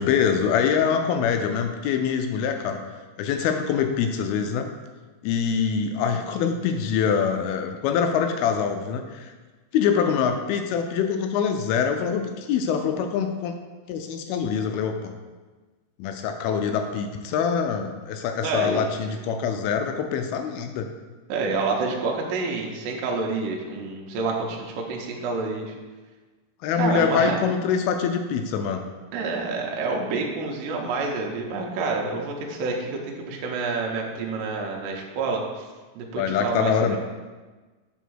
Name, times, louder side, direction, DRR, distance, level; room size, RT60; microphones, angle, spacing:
voice 1, 0.0-2.8 3.2-4.7 5.2-9.3 9.7-13.5 13.9-15.1 16.0-20.9 26.6-28.9 36.2-37.0, left 7 dB, 85° left, 5 dB, 2.4 m, -24 dB
voice 2, 18.4-18.9 21.3-25.7 26.7-27.4 29.1-35.7 36.0-37.0, right 4 dB, 75° right, 0 dB, 2.3 m, -28 dB
7.1 x 3.6 x 6.1 m, 1.3 s
omnidirectional pair, 4.5 m